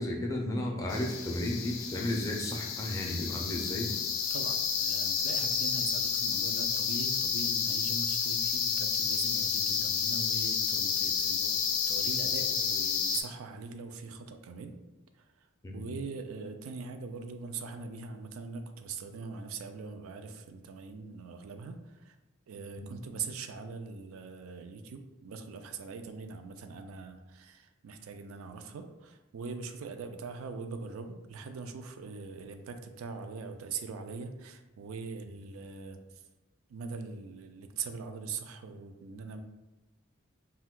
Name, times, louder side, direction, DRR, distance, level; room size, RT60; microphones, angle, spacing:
voice 1, 0.0-3.9 15.6-15.9 22.8-23.0, left 1 dB, 15° left, 0 dB, 0.4 m, -33 dB
sound 1, 0.9-13.2, left 6 dB, 85° left, 0.4 m, -30 dB
voice 2, 4.3-14.8 15.2-15.5 15.7-22.2 22.5-36.2 36.7-39.4, right 4 dB, 85° right, 7 dB, 0.3 m, -42 dB
2.5 x 2.3 x 3.6 m, 1.0 s
head